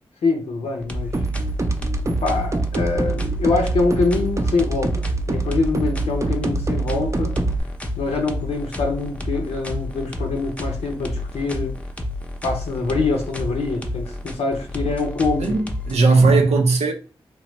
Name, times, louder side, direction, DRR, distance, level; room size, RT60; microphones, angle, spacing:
voice 1, 0.2-1.1 2.2-7.4 8.0-11.7 12.4-15.6, left 3 dB, 80° left, 0.6 m, -24 dB
sound 1, 0.8-16.0, left 1 dB, 10° left, 0.6 m, -30 dB
sound 2, 1.1-7.6, right 3 dB, 30° right, 0.5 m, -25 dB
voice 2, 15.4-16.9, right 3 dB, 80° right, 0.6 m, -17 dB
3.0 x 2.1 x 3.0 m
cardioid pair, 40°, 11 cm